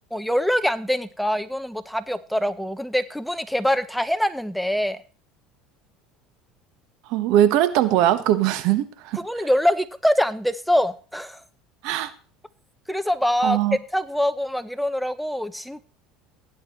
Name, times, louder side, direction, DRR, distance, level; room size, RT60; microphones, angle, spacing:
voice 1, 0.1-5.0 9.2-11.4 12.9-13.6 13.9-15.8, equal, ahead, 12 dB, 0.7 m, -24 dB
voice 2, 7.1-9.4 11.8-12.1 13.4-13.8, right 12 dB, 65° right, 11 dB, 1.2 m, -21 dB
16.0 x 9.9 x 3.1 m, 0.37 s
supercardioid pair, 100°, 0 cm